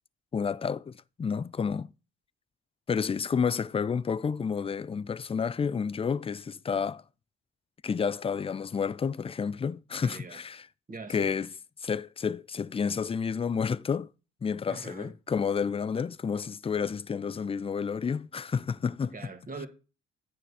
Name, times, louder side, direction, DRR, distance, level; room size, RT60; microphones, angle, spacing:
voice 1, 0.3-1.9 2.9-7.0 7.8-10.6 11.1-11.5 11.8-14.1 14.4-19.1, left 6 dB, 20° left, 0.3 m, -30 dB
voice 2, 10.0-10.4 10.9-11.3 14.7-15.1 19.1-19.7, right 3 dB, 25° right, 1.7 m, -42 dB
9.2 x 4.9 x 5.6 m
cardioid pair, 90°, 30 cm